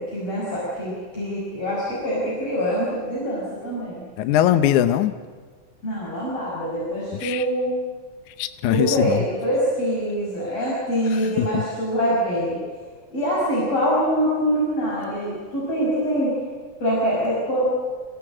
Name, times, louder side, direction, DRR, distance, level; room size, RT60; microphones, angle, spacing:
voice 1, 0.0-4.1 5.8-7.8 8.7-12.6 13.1-16.4 16.8-17.7, equal, 45° left, -7 dB, 7.3 m, -24 dB
voice 2, 4.2-5.1 7.2-7.5 8.3-9.3 11.1-11.6, left 11 dB, 70° left, 10 dB, 2.1 m, -21 dB
26.0 x 18.0 x 8.8 m, 1.5 s
omnidirectional pair, 3.9 m